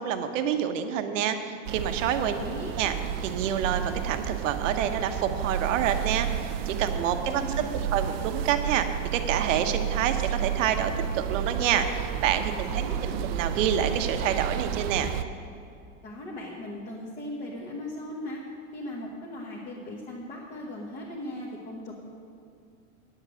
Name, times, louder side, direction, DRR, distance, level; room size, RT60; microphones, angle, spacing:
voice 1, 0.0-2.3 2.8-2.9 3.2-7.4 7.9-8.9 9.1-12.8 13.3-15.1, right 9 dB, 65° right, 7 dB, 1.0 m, -27 dB
sound 1, 1.7-15.2, right 9 dB, 50° right, 0.5 m, -31 dB
voice 2, 2.2-2.7 7.3-8.0 12.5-13.3 16.0-18.4 18.7-21.9, left 1 dB, 20° left, -4 dB, 1.1 m, -38 dB
9.8 x 7.6 x 7.6 m, 2.5 s
supercardioid pair, 165°, 41 cm